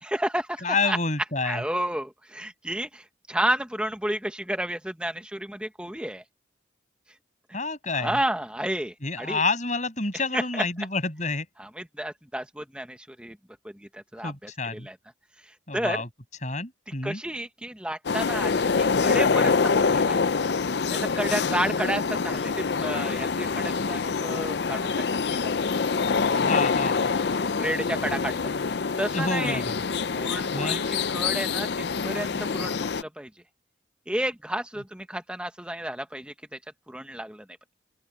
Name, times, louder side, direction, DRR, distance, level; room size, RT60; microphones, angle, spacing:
voice 1, 0.0-1.0 1.4-6.2 8.0-9.4 10.3-10.6 11.6-13.4 13.7-15.0 15.4-16.0 17.0-20.2 20.9-24.9 25.3-25.5 27.6-28.4 29.0-29.6 30.2-33.3 34.1-36.6 36.9-37.4, right 1 dB, 5° right, 1.1 m, -31 dB
voice 2, 0.6-1.6 7.5-8.2 9.0-11.5 14.2-14.9 15.7-16.1 16.4-17.2 26.4-27.0 29.1-29.7 30.5-30.8, left 3 dB, 40° left, 7.7 m, -28 dB
sound 1, 18.0-33.0, left 5 dB, 60° left, 0.5 m, -25 dB
open air
head